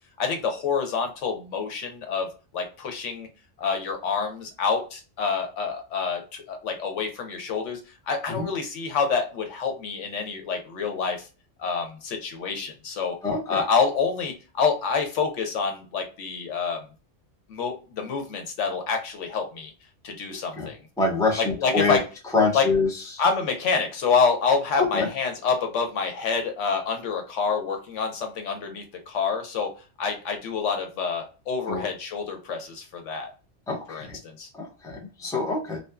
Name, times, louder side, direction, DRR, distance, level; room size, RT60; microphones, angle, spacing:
voice 1, 0.2-2.3 2.5-3.3 3.6-7.8 8.1-11.3 11.6-13.2 13.5-16.8 17.5-19.7 20.0-20.8 21.4-22.0 22.5-22.6 23.2-29.7 30.0-33.3 33.9-34.5, left 5 dB, 90° left, 4 dB, 1.1 m, -27 dB
voice 2, 13.2-13.6 20.6-20.7 21.0-22.0 22.3-23.2 24.8-25.1 31.7-31.9 33.7-34.2 34.5-35.8, left 3 dB, 5° left, -2 dB, 0.5 m, -25 dB
2.5 x 2.3 x 2.2 m, 0.33 s
omnidirectional pair, 1.2 m